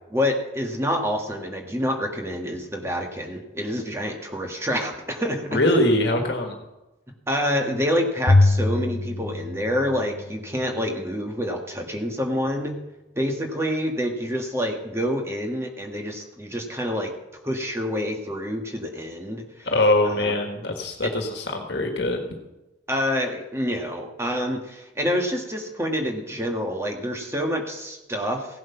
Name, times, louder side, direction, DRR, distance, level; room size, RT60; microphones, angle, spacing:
voice 1, 0.1-5.6 7.3-12.8 13.1-17.1 17.4-19.7 20.0-20.3 21.0-21.1 22.9-28.5, equal, 15° right, 2 dB, 1.5 m, -27 dB
voice 2, 5.5-6.5 19.6-22.4, left 1 dB, 60° left, 3 dB, 1.6 m, -22 dB
Bowed string instrument, 8.3-10.7, left 2 dB, 35° left, 0.5 m, -22 dB
16.0 x 7.8 x 5.8 m, 1.0 s
head